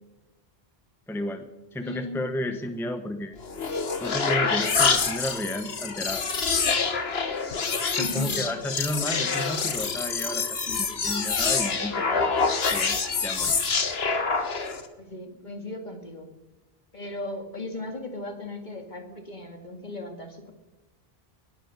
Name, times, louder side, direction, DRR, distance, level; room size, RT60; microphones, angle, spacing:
voice 1, 1.1-1.4 1.7-3.3 4.0-6.3 8.0-13.6, left 1 dB, ahead, 7 dB, 0.9 m, -32 dB
voice 2, 1.8-2.2 8.0-8.4 15.0-16.3 16.9-20.5, left 2 dB, 50° left, 5 dB, 2.3 m, -36 dB
sound 1, 3.4-14.9, left 4 dB, 80° left, 1.6 m, -26 dB
20.0 x 9.3 x 6.7 m, 1.1 s
omnidirectional pair, 1.0 m